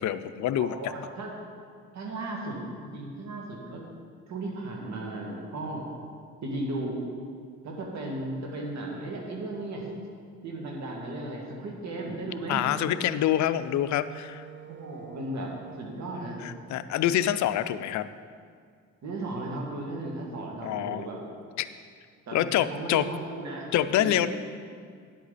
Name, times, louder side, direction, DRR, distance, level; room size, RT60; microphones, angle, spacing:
voice 1, 0.0-0.8 12.5-14.5 16.4-18.1 20.6-21.1 21.6-21.7 22.3-23.1 23.7-24.3, left 12 dB, 70° left, 12 dB, 0.5 m, -26 dB
voice 2, 0.6-1.3 1.9-3.8 4.3-5.9 6.4-7.1 7.6-9.9 10.4-13.0 14.6-15.5 15.8-16.4 19.0-21.2 22.3-23.7 24.0-24.3, right 2 dB, 65° right, -1 dB, 2.2 m, -35 dB
Wind instrument woodwind instrument, 12.6-17.3, right 9 dB, 35° right, 0.6 m, -47 dB
10.5 x 8.1 x 4.1 m, 2.1 s
cardioid pair, 90°, 30 cm